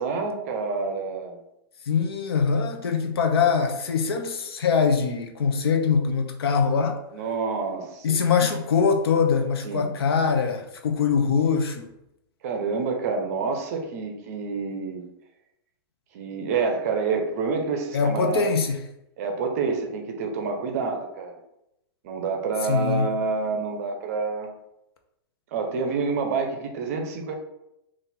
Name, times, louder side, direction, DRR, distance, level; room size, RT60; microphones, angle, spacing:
voice 1, 0.0-1.4 7.1-8.5 9.6-9.9 12.4-15.0 16.1-18.5 19.2-21.4 22.0-24.5 25.5-27.3, right 4 dB, 40° right, 4 dB, 0.6 m, -28 dB
voice 2, 1.9-7.0 8.0-11.9 17.9-18.8 22.7-23.1, left 5 dB, 75° left, 5 dB, 0.7 m, -23 dB
3.9 x 2.5 x 4.1 m, 0.82 s
supercardioid pair, 170°, 13 cm